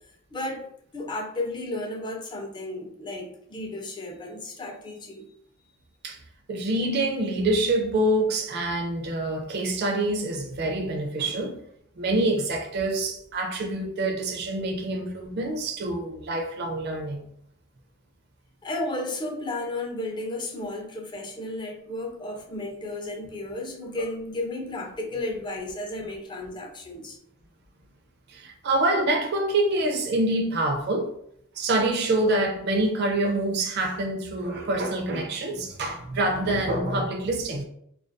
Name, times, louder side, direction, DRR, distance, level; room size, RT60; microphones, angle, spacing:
voice 1, 0.3-5.3 18.6-27.2, left 2 dB, 25° left, 0.4 m, -33 dB
voice 2, 6.5-11.6 12.0-17.3 28.3-31.1 31.5-37.6, right 2 dB, 55° right, 0.4 m, -26 dB
2.3 x 2.2 x 2.5 m
head